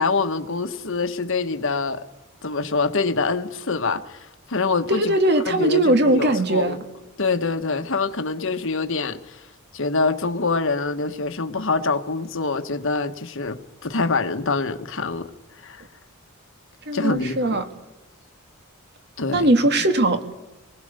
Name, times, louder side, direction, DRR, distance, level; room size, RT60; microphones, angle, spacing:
voice 1, 0.0-2.0 2.4-5.2 5.5-6.8 7.2-9.4 9.7-15.3 15.6-15.8 16.9-17.6 19.2-19.7, left 3 dB, 60° left, 1.3 m, -25 dB
voice 2, 4.9-6.8 16.9-17.7 19.3-20.3, right 1 dB, 50° right, 1.9 m, -20 dB
26.5 x 19.5 x 6.7 m
head